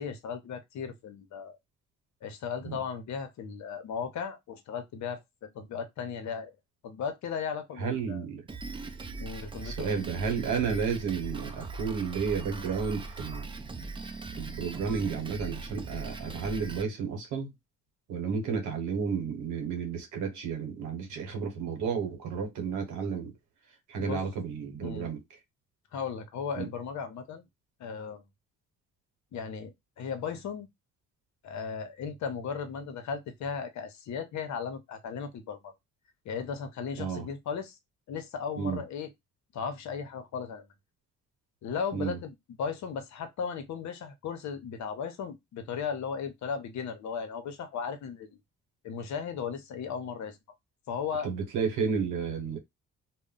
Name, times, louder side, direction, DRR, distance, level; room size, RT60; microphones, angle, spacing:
voice 1, 0.0-1.6 2.2-6.5 6.8-8.2 9.2-9.9 23.9-24.2 24.8-25.1 25.9-27.4 27.8-28.2 29.3-30.7 31.4-35.7 36.2-37.8 38.1-39.1 39.5-40.6 41.6-48.4 48.8-50.4 50.9-51.3, left 6 dB, 70° left, 0.7 m, -36 dB
voice 2, 7.8-8.4 9.6-13.5 14.4-17.5 18.1-23.3 23.9-25.2 26.6-26.7 37.0-37.2 38.6-38.8 41.9-42.2 51.2-52.6, right 6 dB, 85° right, 1.0 m, -32 dB
Drum kit, 8.5-16.8, right 3 dB, 15° right, 0.4 m, -40 dB
2.2 x 2.1 x 3.7 m
cardioid pair, 90°, 30 cm